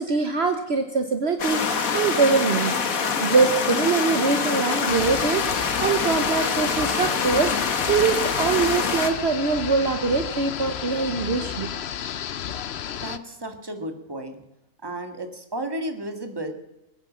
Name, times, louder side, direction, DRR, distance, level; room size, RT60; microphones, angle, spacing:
voice 1, 0.0-11.7, right 4 dB, 50° right, 7 dB, 1.3 m, -23 dB
sound 1, 1.4-9.1, left 5 dB, 85° left, 1.8 m, -25 dB
sound 2, 4.9-13.2, left 9 dB, 55° left, 0.9 m, -32 dB
voice 2, 13.0-14.4 14.8-16.5, right 1 dB, 15° right, 6 dB, 1.8 m, -33 dB
21.0 x 9.5 x 7.3 m, 0.91 s
omnidirectional pair, 1.4 m